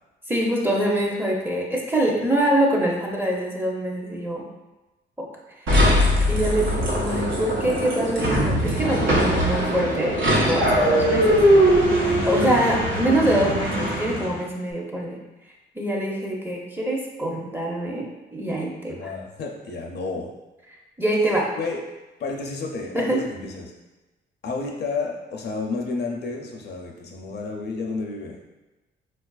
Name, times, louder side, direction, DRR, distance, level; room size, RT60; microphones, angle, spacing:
voice 1, 0.3-4.5 5.2-5.3 6.3-11.4 12.3-15.2 15.7-19.1 21.0-21.5 22.9-23.2, right 1 dB, 10° right, -1 dB, 0.6 m, -24 dB
sound 1, 5.7-14.4, equal, 75° right, 0.9 m, -21 dB
voice 2, 12.0-12.3 19.0-20.3 21.6-21.8 22.2-23.7 24.4-28.4, left 4 dB, 55° left, 1 dB, 0.5 m, -31 dB
4.1 x 2.4 x 2.3 m, 1.1 s
cardioid pair, 90°, 20 cm